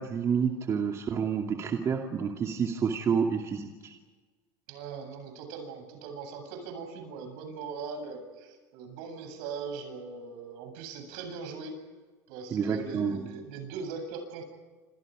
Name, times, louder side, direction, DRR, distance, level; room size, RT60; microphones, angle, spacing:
voice 1, 0.0-3.9 12.5-13.3, right 6 dB, 30° right, 2 dB, 2.5 m, -29 dB
voice 2, 4.7-11.8 12.3-14.4, right 5 dB, 70° right, 6 dB, 8.0 m, -40 dB
29.0 x 27.0 x 5.2 m, 1.3 s
supercardioid pair, 115°, 9 cm